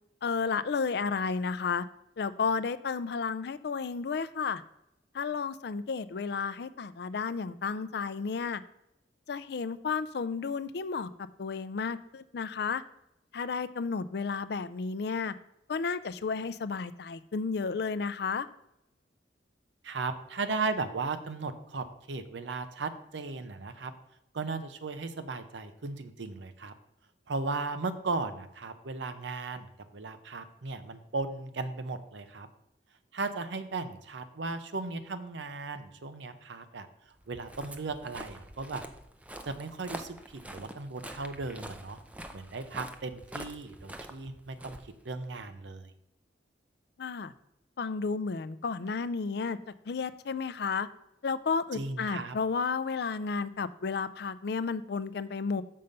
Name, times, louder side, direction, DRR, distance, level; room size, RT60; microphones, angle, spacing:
voice 1, 0.2-1.8 2.2-4.6 5.1-8.6 9.3-11.1 11.4-12.8 13.3-15.3 15.7-18.5 47.0-47.3 47.8-49.6 49.9-50.9 51.2-55.6, left 5 dB, 60° left, 14 dB, 0.4 m, -32 dB
voice 2, 19.8-23.9 24.3-26.7 27.3-32.5 33.1-36.9 37.3-38.8 39.4-42.0 42.3-44.8 45.0-45.9 51.7-52.4, right 3 dB, 80° right, 10 dB, 0.7 m, -36 dB
Walk footsteps, 37.2-45.4, right 1 dB, 10° right, 0.4 m, -46 dB
6.8 x 5.5 x 5.2 m, 0.80 s
head